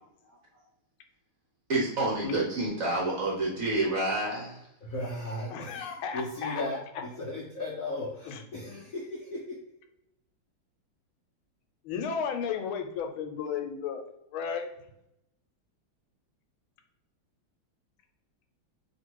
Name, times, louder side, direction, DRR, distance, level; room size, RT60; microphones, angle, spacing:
voice 1, 1.7-4.6, right 2 dB, 55° right, -3 dB, 1.0 m, -28 dB
voice 2, 4.8-9.4, left 2 dB, 70° left, -3 dB, 0.8 m, -36 dB
voice 3, 5.5-6.8 8.2-8.4 11.8-14.1 14.3-14.7, left 6 dB, 85° left, 5 dB, 1.4 m, -34 dB
3.1 x 2.8 x 4.4 m, 0.84 s
omnidirectional pair, 2.2 m